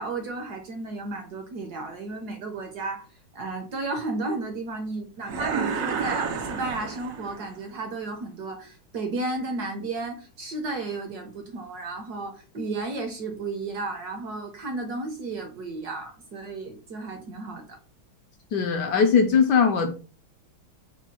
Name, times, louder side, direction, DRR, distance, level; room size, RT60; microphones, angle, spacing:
voice 1, 0.0-3.1 3.3-17.7, right 3 dB, 65° right, 1.0 m, -33 dB
sound 1, 5.2-7.6, right 6 dB, 85° right, 0.7 m, -30 dB
voice 2, 18.5-20.0, left 6 dB, 75° left, 1.0 m, -20 dB
4.4 x 2.2 x 4.1 m
omnidirectional pair, 2.2 m